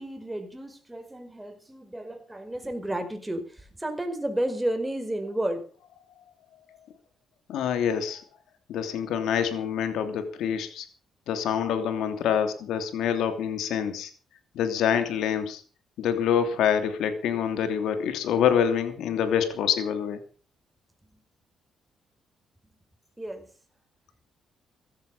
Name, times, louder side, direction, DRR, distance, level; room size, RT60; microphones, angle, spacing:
voice 1, 0.0-5.6 23.2-23.5, right 1 dB, 10° right, 6 dB, 4.9 m, -32 dB
voice 2, 7.5-8.2 8.7-10.8 11.3-14.1 14.5-15.6 16.0-20.2, left 8 dB, 80° left, 9 dB, 2.9 m, -26 dB
15.5 x 13.5 x 5.5 m, 0.39 s
cardioid pair, 90°, 0 cm